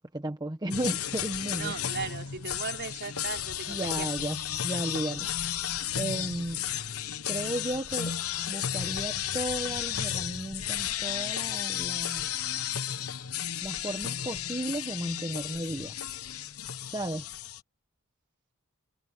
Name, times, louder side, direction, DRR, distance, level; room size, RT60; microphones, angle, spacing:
voice 1, 0.1-1.7 3.7-4.4 4.6-5.3 6.0-6.6 7.3-8.1 8.5-12.3 13.6-15.9 16.9-17.3, right 1 dB, 20° right, 1.2 m, -34 dB
sound 1, 0.7-17.6, left 10 dB, 80° left, 1.1 m, -33 dB
voice 2, 1.5-4.1 6.5-6.9, right 4 dB, 55° right, 4.3 m, -38 dB
head